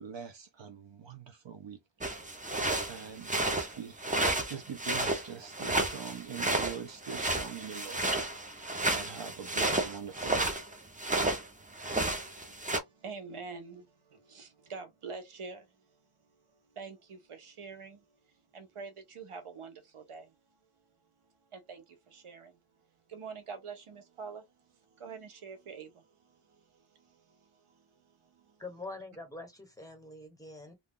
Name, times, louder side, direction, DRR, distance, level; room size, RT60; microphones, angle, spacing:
voice 1, 0.0-1.8 2.1-2.3 2.9-4.0 4.5-8.2 8.9-10.6, right 7 dB, 65° right, 0.6 m, -43 dB
sound 1, 2.0-11.5 11.7-12.8, right 2 dB, 15° right, 0.6 m, -31 dB
voice 2, 12.4-20.6 21.2-22.6 23.1-28.6, right 5 dB, 85° right, 0.9 m, -47 dB
voice 3, 28.6-30.7, left 2 dB, 5° left, 1.1 m, -45 dB
2.6 x 2.2 x 3.6 m
wide cardioid pair, 85°, 49 cm